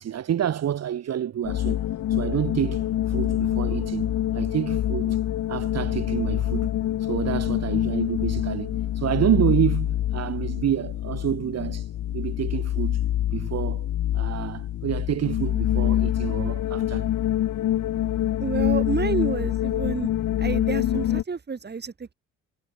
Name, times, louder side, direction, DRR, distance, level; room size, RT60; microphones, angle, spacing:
voice 1, 0.0-1.8 2.1-5.2 5.5-6.7 7.0-13.0 13.3-13.9 14.1-17.1, right 10 dB, 60° right, 1.8 m, -28 dB
sound 1, 1.4-21.2, left 12 dB, 75° left, 2.3 m, -26 dB
voice 2, 18.4-20.1 20.4-22.1, right 5 dB, 35° right, 4.8 m, -29 dB
cardioid pair, 90°, 30 cm